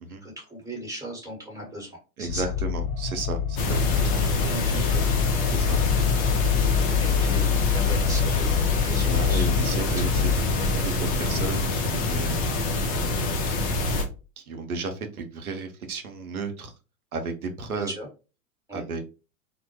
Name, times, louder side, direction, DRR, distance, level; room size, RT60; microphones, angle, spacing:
voice 1, 0.2-2.4 4.1-5.0 6.9-7.5 7.7-8.5 8.8-9.8 13.1-13.3 18.0-18.1 18.7-18.8, right 1 dB, 10° right, -1 dB, 1.1 m, -38 dB
voice 2, 2.2-4.2 5.4-5.8 8.9-10.3 10.7-12.4 12.9-13.2 13.5-14.0 14.4-16.7 17.1-17.9 18.7-19.0, right 3 dB, 85° right, 6 dB, 0.7 m, -34 dB
sound 1, 2.3-10.4, left 8 dB, 50° left, 0.9 m, -25 dB
sound 2, 3.6-14.0, left 2 dB, 25° left, 0.3 m, -26 dB
2.1 x 2.0 x 2.9 m, 0.31 s
hypercardioid pair, 95°, 42 cm